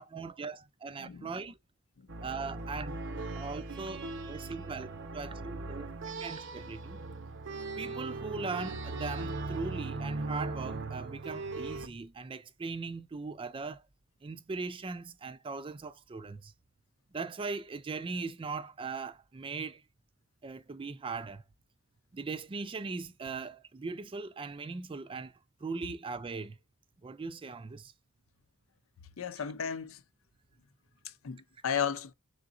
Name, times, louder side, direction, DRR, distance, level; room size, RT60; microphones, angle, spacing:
voice 1, 0.0-1.6 2.2-7.0 7.8-13.8 14.2-16.5 17.1-19.8 20.4-21.4 22.1-26.6 27.0-27.9, right 4 dB, 25° right, 0.4 m, -39 dB
sound 1, 2.1-11.9, right 3 dB, 60° right, 0.7 m, -39 dB
voice 2, 29.2-30.0 31.2-32.1, left 7 dB, 70° left, 0.5 m, -34 dB
3.9 x 3.7 x 2.4 m
head